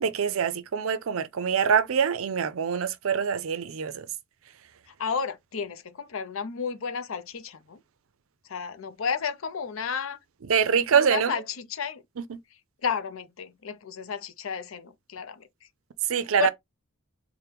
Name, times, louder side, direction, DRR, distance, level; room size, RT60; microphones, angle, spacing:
voice 1, 0.0-4.1 10.5-11.3 12.2-12.4 16.1-16.5, right 7 dB, 70° right, 0.5 m, -25 dB
voice 2, 5.0-7.8 8.5-10.2 10.7-12.0 12.8-15.5 16.4-16.5, left 6 dB, 70° left, 0.6 m, -32 dB
4.4 x 2.1 x 3.3 m
head